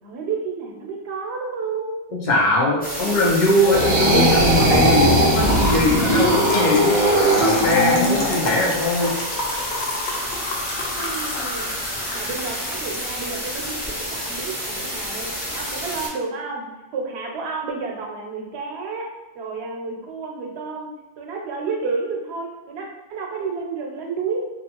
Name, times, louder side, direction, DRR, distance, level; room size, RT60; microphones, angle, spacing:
voice 1, 0.0-2.0 2.8-3.3 10.9-11.7 12.1-16.7 16.9-19.1 19.3-20.9 21.2-24.4, right 4 dB, 85° right, 0 dB, 0.9 m, -30 dB
voice 2, 2.1-7.0 7.4-9.1, left 1 dB, 50° left, -6 dB, 0.7 m, -21 dB
sound 1, 2.8-16.1, equal, 10° left, 0.5 m, -30 dB
sound 2, 3.6-8.4, right 1 dB, 50° right, 0.7 m, -18 dB
Trickle dribble / Fill (with liquid), 6.2-13.7, left 2 dB, 85° left, 0.9 m, -29 dB
2.5 x 2.3 x 2.8 m, 1.0 s
omnidirectional pair, 1.1 m